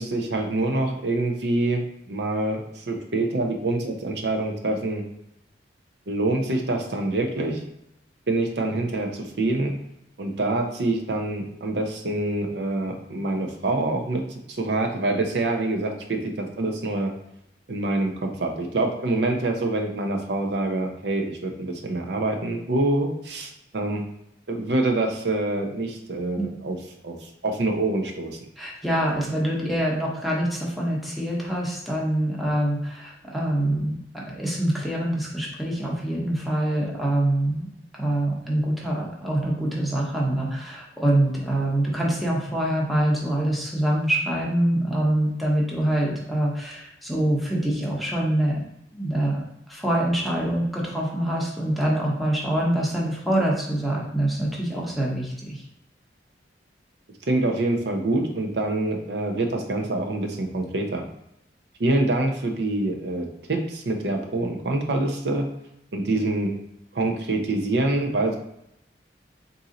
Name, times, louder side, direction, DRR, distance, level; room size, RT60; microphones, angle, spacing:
voice 1, 0.0-5.0 6.1-7.6 8.3-9.7 10.2-14.2 14.5-17.1 17.7-24.0 24.5-26.8 27.0-28.4 57.3-61.1 61.8-65.5 65.9-66.5 66.9-68.4, right 2 dB, 65° right, 3 dB, 0.6 m, -26 dB
voice 2, 28.6-37.7 37.9-48.6 48.9-49.4 49.7-55.6, right 1 dB, ahead, -4 dB, 0.9 m, -25 dB
4.1 x 2.7 x 3.8 m, 0.79 s
head